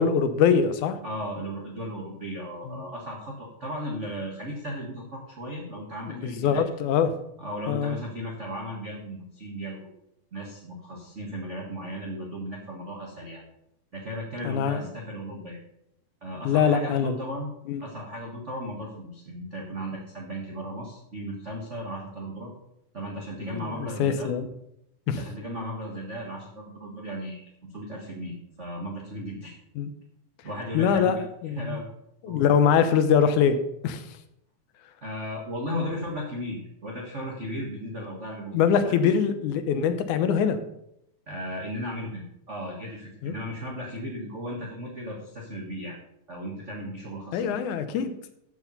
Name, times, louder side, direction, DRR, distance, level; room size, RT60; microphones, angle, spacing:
voice 1, 0.0-1.0 2.7-2.8 6.1-7.1 7.7-8.0 14.4-14.8 16.5-17.2 17.7-17.8 23.4-24.5 25.1-25.2 29.8-29.9 30.7-31.2 31.4-31.8 32.2-33.6 33.8-34.0 35.8-35.9 38.5-40.6 43.2-43.4 47.3-48.1, left 7 dB, 75° left, 10 dB, 2.2 m, -23 dB
voice 2, 1.0-6.6 7.4-9.9 10.3-13.4 13.9-15.6 16.2-17.5 17.8-22.5 22.9-24.3 25.1-29.6 30.4-31.2 31.5-31.8 32.2-32.6 35.0-39.1 41.3-46.0 46.3-47.6, equal, 40° right, -2 dB, 1.0 m, -36 dB
13.5 x 4.8 x 5.4 m, 0.79 s
omnidirectional pair, 3.6 m